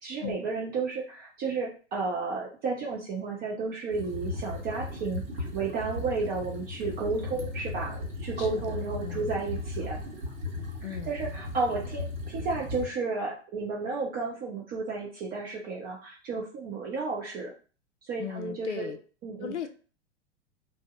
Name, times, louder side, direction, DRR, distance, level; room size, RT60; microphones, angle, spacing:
voice 1, 0.0-5.2 5.5-10.0 11.1-17.5 18.0-18.9 19.2-19.5, right 4 dB, 25° right, -2 dB, 0.6 m, -32 dB
sound 1, 3.9-12.9, left 2 dB, 55° right, 1.5 m, -36 dB
voice 2, 8.4-9.4 10.8-11.1 18.2-19.0 19.4-19.7, left 9 dB, 75° left, 9 dB, 0.5 m, -38 dB
2.7 x 2.1 x 3.5 m, 0.38 s
figure-of-eight pair, 95°, 36 cm